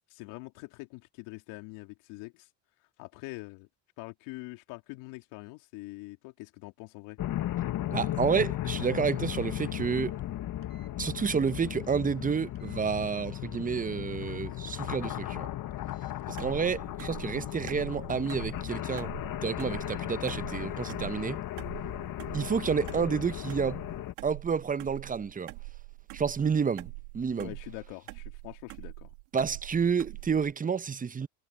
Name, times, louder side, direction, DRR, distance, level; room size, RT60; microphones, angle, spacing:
voice 1, 0.1-2.5 2.8-3.7 4.0-7.2 27.4-29.1, left 24 dB, 75° left, 2.9 m, -44 dB
sound 1, 7.2-24.1, left 13 dB, 50° left, 1.4 m, -36 dB
voice 2, 7.9-10.2 11.0-15.5 16.3-19.1 19.4-21.4 22.3-23.8 24.2-25.5 26.1-27.5 29.3-31.3, right 6 dB, 20° right, 0.8 m, -30 dB
sound 2, 10.6-10.9 12.6-12.8 14.1-14.4 15.9-16.2 17.4-17.7 18.6-18.9 19.8-20.1 21.0-21.3, right 8 dB, 45° right, 6.7 m, -65 dB
sound 3, 16.4-30.5, right 30 dB, 80° right, 2.7 m, -45 dB
hypercardioid pair, 75°, 44 cm